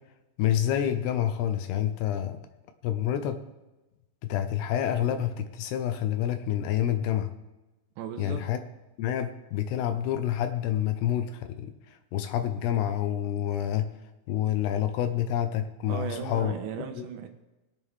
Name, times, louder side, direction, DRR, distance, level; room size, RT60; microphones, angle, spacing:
voice 1, 0.4-2.4 2.8-3.4 4.3-7.3 8.2-8.6 9.0-11.7 12.1-13.9 14.3-16.5 16.9-17.1, left 10 dB, 75° left, 9 dB, 2.8 m, -28 dB
voice 2, 8.0-8.4 15.8-17.3, right 8 dB, 85° right, 4 dB, 3.3 m, -36 dB
22.0 x 8.0 x 3.7 m, 1.0 s
omnidirectional pair, 5.0 m